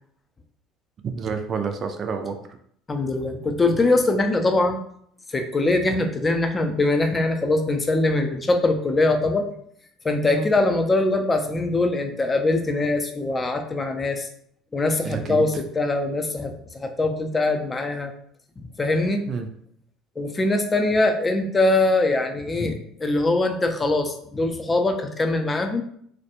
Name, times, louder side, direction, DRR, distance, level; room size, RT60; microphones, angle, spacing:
voice 1, 1.0-2.4 10.3-10.5 15.0-15.4 19.3-19.5, right 5 dB, 45° right, 7 dB, 0.4 m, -28 dB
voice 2, 2.9-4.8 5.3-9.5 10.0-14.3 14.7-18.1 18.8-19.3 20.2-25.8, left 2 dB, 25° left, 5 dB, 0.5 m, -22 dB
2.3 x 2.1 x 2.9 m, 0.65 s
hypercardioid pair, 70°, 0 cm